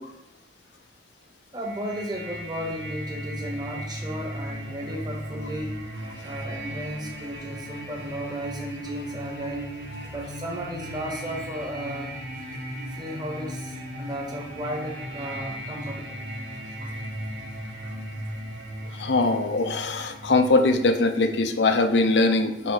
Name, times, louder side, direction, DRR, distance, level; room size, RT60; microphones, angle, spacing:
voice 1, 1.5-5.8 6.2-9.7 10.1-12.1 12.9-16.2, equal, 25° right, 0 dB, 1.1 m, -34 dB
sound 1, 1.6-21.4, right 1 dB, 60° right, 1.5 m, -37 dB
voice 2, 18.9-22.7, left 3 dB, 70° left, 7 dB, 0.6 m, -22 dB
7.0 x 3.1 x 4.8 m, 0.82 s
head